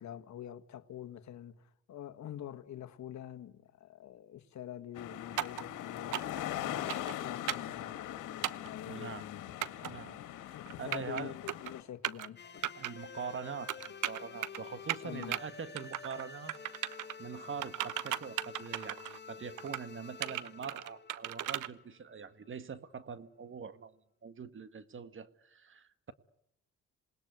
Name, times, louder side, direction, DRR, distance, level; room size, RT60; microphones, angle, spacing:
voice 1, 0.0-6.4 6.7-9.5 10.2-12.8 15.0-15.4, left 11 dB, 65° left, 1.8 m, -46 dB
sound 1, 4.9-11.8, left 12 dB, 90° left, 2.1 m, -41 dB
sound 2, 5.4-5.6 6.1-6.4 6.9-7.1 7.5-7.7 8.4-8.7 9.6-9.9 10.7-11.2 11.5-11.7 12.0-12.3 12.6-12.9 13.7-14.6 14.9-15.4 15.8-16.2 16.5-17.1 17.6-19.2 19.6-19.8 20.2-21.7, right 13 dB, 80° right, 1.0 m, -36 dB
voice 2, 8.9-9.3 9.8-11.3 12.8-16.5 17.2-23.9 24.2-26.1, right 6 dB, 40° right, 1.7 m, -44 dB
sound 3, 12.4-22.3, left 6 dB, 35° left, 1.5 m, -50 dB
27.5 x 20.0 x 9.3 m
cardioid pair, 90°, 30 cm